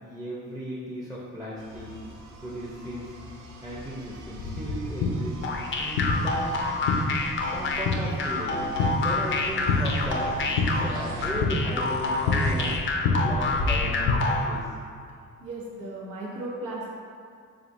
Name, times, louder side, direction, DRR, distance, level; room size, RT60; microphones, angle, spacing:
voice 1, 0.0-1.9 2.4-3.2 3.6-5.4 5.8-6.6 7.5-8.7 9.0-10.4 10.7-12.8 13.2-14.6, equal, 10° right, -7 dB, 0.6 m, -36 dB
sound 1, 1.6-12.8, right 1 dB, 65° right, 0.6 m, -42 dB
sound 2, 4.4-14.2, left 3 dB, 85° left, 0.6 m, -28 dB
sound 3, 5.4-14.6, left 3 dB, 40° left, 0.5 m, -28 dB
voice 2, 15.4-16.9, right 2 dB, 90° right, -4 dB, 1.0 m, -35 dB
4.9 x 3.8 x 2.6 m, 2.3 s
cardioid pair, 90°, 30 cm